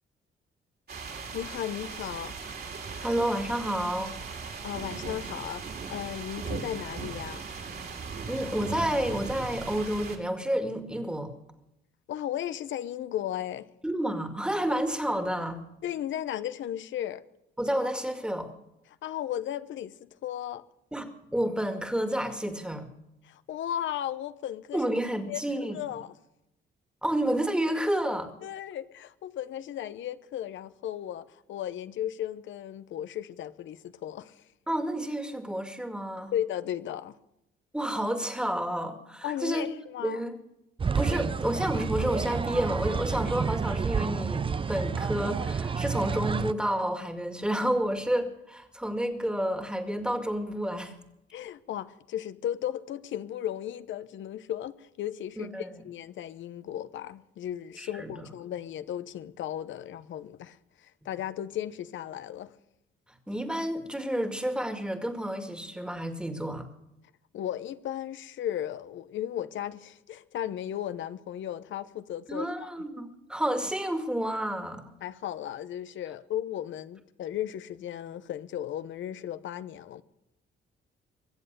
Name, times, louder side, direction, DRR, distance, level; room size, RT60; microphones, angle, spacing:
sound 1, 0.9-10.2, right 5 dB, 50° right, 3.5 m, -38 dB
voice 1, 1.3-2.4 4.6-7.4 12.1-13.7 15.8-17.2 19.0-20.6 23.2-24.8 25.3-26.1 28.4-34.4 36.3-37.1 39.2-40.2 51.3-62.5 67.3-72.7 75.0-80.0, left 11 dB, 70° left, 0.8 m, -35 dB
voice 2, 3.0-4.2 8.3-11.3 13.8-15.6 17.6-18.5 20.9-22.9 24.7-25.8 27.0-28.3 34.7-36.3 37.7-39.7 40.0-40.4 41.0-50.9 55.4-55.7 57.8-58.1 63.3-66.7 72.3-74.8, right 1 dB, 5° right, 2.1 m, -30 dB
sound 2, 40.8-46.5, right 5 dB, 25° right, 0.6 m, -29 dB
23.5 x 7.9 x 6.8 m
cardioid pair, 90°, 20 cm